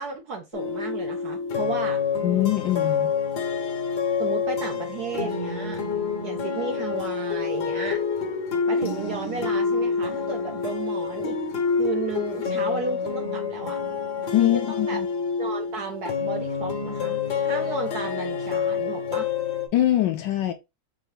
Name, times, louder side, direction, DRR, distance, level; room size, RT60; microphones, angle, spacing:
voice 1, 0.0-2.0 4.2-5.8 6.2-8.0 8.7-11.4 11.7-13.8 14.4-15.0 15.4-19.3, right 4 dB, 65° right, 1.0 m, -34 dB
sound 1, 0.5-19.7, left 5 dB, 60° left, 1.4 m, -27 dB
voice 2, 2.2-3.1 14.3-15.1 19.7-20.5, left 14 dB, 75° left, 1.1 m, -23 dB
4.8 x 2.7 x 3.1 m
omnidirectional pair, 2.3 m